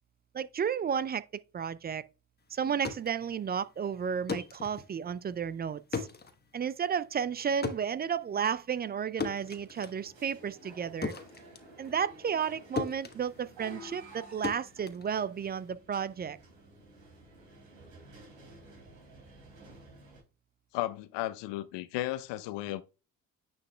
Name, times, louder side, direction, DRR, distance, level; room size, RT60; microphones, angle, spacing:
voice 1, 0.3-1.2 1.5-2.0 2.5-6.1 6.5-11.1 11.8-16.4, right 7 dB, 20° right, 0.4 m, -32 dB
sound 1, 2.6-12.5 12.8-15.7, left 4 dB, 20° left, 1.1 m, -40 dB
sound 2, 9.2-20.2, right 1 dB, 75° right, 3.3 m, -53 dB
voice 2, 20.7-22.8, left 15 dB, 60° left, 0.8 m, -34 dB
9.7 x 5.5 x 2.3 m
hypercardioid pair, 50°, 48 cm